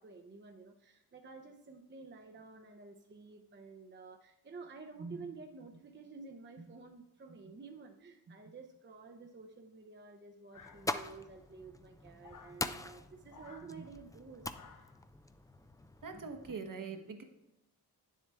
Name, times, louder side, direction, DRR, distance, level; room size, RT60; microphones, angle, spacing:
voice 1, 0.0-14.9, right 4 dB, 30° right, 4 dB, 0.6 m, -51 dB
sound 1, 10.5-11.3 12.2-12.6 13.3-13.7 14.5-15.0, left 6 dB, 50° left, 0.7 m, -56 dB
sound 2, 10.5-16.6, left 2 dB, 10° left, 0.3 m, -43 dB
voice 2, 16.0-17.2, right 4 dB, 50° right, 5 dB, 1.1 m, -43 dB
9.7 x 7.4 x 3.4 m, 0.93 s
wide cardioid pair, 120°, 40 cm